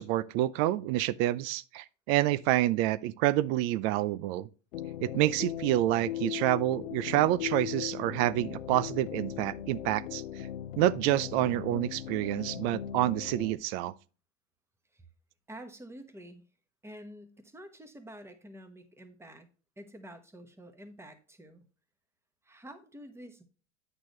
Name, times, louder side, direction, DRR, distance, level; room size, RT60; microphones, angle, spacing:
voice 1, 0.0-4.5 5.0-10.2 10.8-13.9, right 15 dB, 55° right, 0.6 m, -28 dB
sound 1, 4.7-13.5, left 11 dB, 85° left, 0.7 m, -38 dB
voice 2, 15.5-16.4 16.8-19.5 19.8-21.6 22.4-23.4, equal, 5° right, 1.1 m, -48 dB
8.9 x 6.3 x 3.1 m
hypercardioid pair, 105°, 37 cm